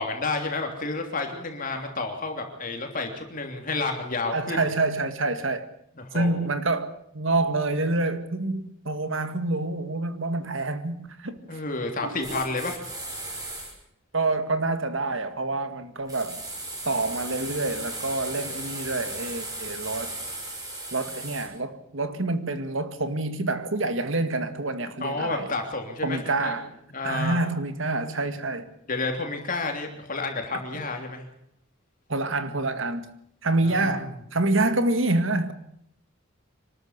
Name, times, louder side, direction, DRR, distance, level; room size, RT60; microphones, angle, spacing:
voice 1, 0.0-4.6 6.1-6.5 11.5-12.8 25.0-26.5 26.9-27.4 28.9-31.2 33.6-34.1, left 3 dB, 40° left, 3.1 m, -30 dB
voice 2, 4.3-5.7 6.1-11.6 12.0-12.4 14.1-16.4 16.9-20.1 20.9-25.5 26.0-26.7 27.0-28.7 32.1-33.1 33.4-35.5, right 2 dB, 70° right, 2.0 m, -27 dB
sound 1, 12.2-13.7 16.1-21.5, right 2 dB, 20° right, 5.6 m, -36 dB
25.5 x 13.0 x 8.2 m
head